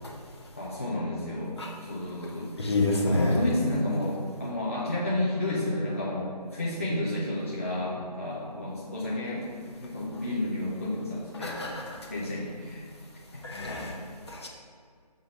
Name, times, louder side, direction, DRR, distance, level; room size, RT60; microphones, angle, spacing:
voice 1, 0.6-2.7 3.0-9.5 9.8-11.6 12.1-12.8 13.7-13.8, left 1 dB, 20° left, -8 dB, 0.6 m, -31 dB
voice 2, 2.6-3.4 11.3-12.0 13.4-14.0 14.3-14.5, left 2 dB, 40° left, -1 dB, 1.0 m, -28 dB
6.7 x 3.8 x 4.8 m, 2.2 s
figure-of-eight pair, 160°, 21 cm